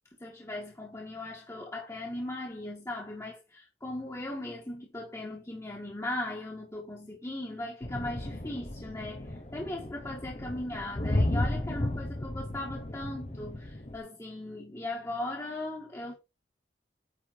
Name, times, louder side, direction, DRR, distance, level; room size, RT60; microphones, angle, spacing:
voice 1, 0.2-16.1, left 1 dB, 15° left, 1.8 m, -38 dB
sound 1, 7.8-14.0, left 1 dB, 40° left, 1.1 m, -33 dB
9.5 x 3.6 x 4.6 m
head